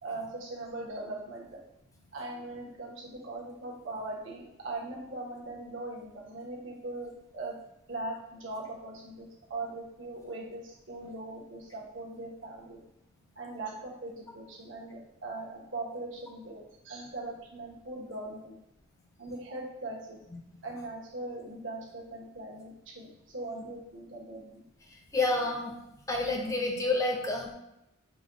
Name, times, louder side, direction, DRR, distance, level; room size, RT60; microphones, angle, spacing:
voice 1, 0.0-1.6 2.1-7.5 7.9-12.8 13.4-18.6 19.2-20.2 20.6-23.1 23.3-24.5, right 2 dB, 65° right, -2 dB, 1.0 m, -40 dB
voice 2, 25.1-25.7 26.1-27.5, left 2 dB, 15° left, 1 dB, 0.6 m, -29 dB
5.1 x 2.2 x 3.7 m, 0.84 s
head